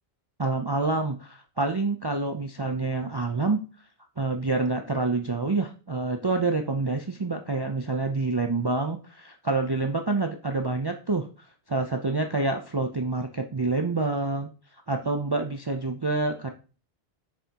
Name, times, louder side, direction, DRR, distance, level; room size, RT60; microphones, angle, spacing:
voice 1, 0.4-3.6 4.2-11.3 11.7-14.5 14.9-16.5, right 3 dB, 35° right, 5 dB, 0.4 m, -27 dB
6.9 x 5.8 x 2.9 m, 0.35 s
omnidirectional pair, 1.1 m